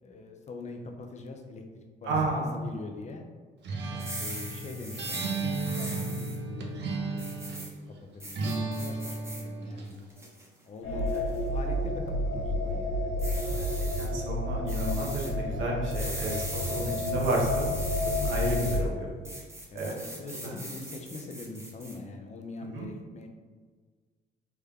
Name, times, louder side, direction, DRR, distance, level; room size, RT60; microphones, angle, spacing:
voice 1, 0.0-3.3 4.2-7.5 8.1-10.0 10.6-13.9 19.7-23.3, left 3 dB, 35° left, 3 dB, 0.5 m, -43 dB
voice 2, 2.0-2.5 13.5-13.7 14.0-17.7 18.1-19.1 19.7-19.9 20.4-20.5 22.7-22.9, right 2 dB, 85° right, -2 dB, 0.9 m, -31 dB
Acoustic guitar, 3.6-7.8 8.4-9.9, right 3 dB, 60° right, 0.6 m, -34 dB
sound 1, 3.9-6.4 7.2-7.7 8.2-9.4 9.9-10.5 11.1-11.4 13.2-14.1 14.7-15.3 15.9-18.8 19.2-22.0, right 1 dB, 15° right, 0.8 m, -40 dB
sound 2, 10.8-18.9, left 1 dB, 85° left, 1.0 m, -30 dB
3.4 x 2.2 x 3.5 m, 1.5 s
cardioid pair, 90°, 20 cm